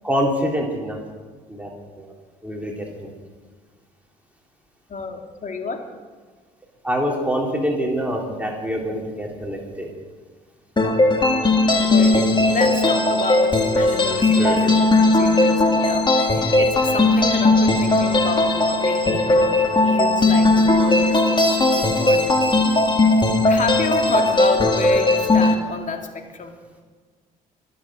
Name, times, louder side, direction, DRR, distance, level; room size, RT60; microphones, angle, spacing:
voice 1, 0.0-1.0 1.5-1.7 2.0-2.1 2.4-3.1 6.8-9.9 11.8-12.1 14.4-14.8, equal, 5° right, -1 dB, 3.9 m, -25 dB
voice 2, 4.9-5.8 10.8-11.2 11.9-12.2 12.5-22.9 23.5-26.5, left 4 dB, 40° left, 4 dB, 2.9 m, -30 dB
sound 1, 10.8-25.5, left 2 dB, 25° left, 2.6 m, -18 dB
24.5 x 8.7 x 6.5 m, 1.5 s
hypercardioid pair, 55°, 20 cm